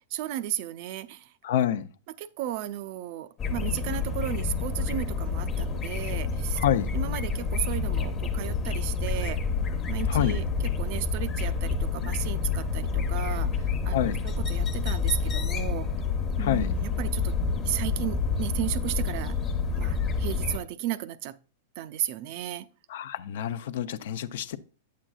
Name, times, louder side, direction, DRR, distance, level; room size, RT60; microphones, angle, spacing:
voice 1, 0.1-1.3 2.2-6.6 6.9-9.4 9.9-15.9 16.4-17.4 17.6-19.4 19.8-21.4 21.8-22.7, right 13 dB, 50° right, 0.4 m, -34 dB
voice 2, 1.4-1.9 6.6-6.9 10.1-10.4 13.9-14.2 16.4-16.7 22.9-24.6, left 10 dB, 70° left, 0.5 m, -27 dB
sound 1, 3.4-20.6, left 5 dB, 25° left, 0.9 m, -28 dB
8.8 x 7.5 x 2.4 m
hypercardioid pair, 140°, 0 cm